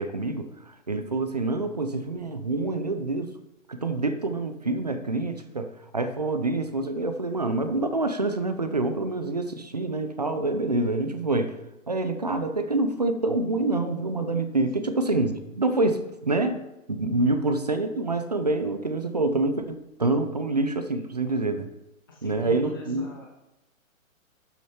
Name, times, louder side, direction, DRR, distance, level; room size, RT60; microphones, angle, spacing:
voice 1, 0.0-3.3 3.7-11.6 11.9-16.6 16.9-21.7 22.2-23.1, right 2 dB, 30° right, 9 dB, 0.5 m, -26 dB
voice 2, 17.2-17.5 20.9-21.0 22.1-23.3, left 3 dB, 15° left, -2 dB, 0.6 m, -45 dB
12.0 x 6.6 x 4.4 m, 0.95 s
hypercardioid pair, 170°, 42 cm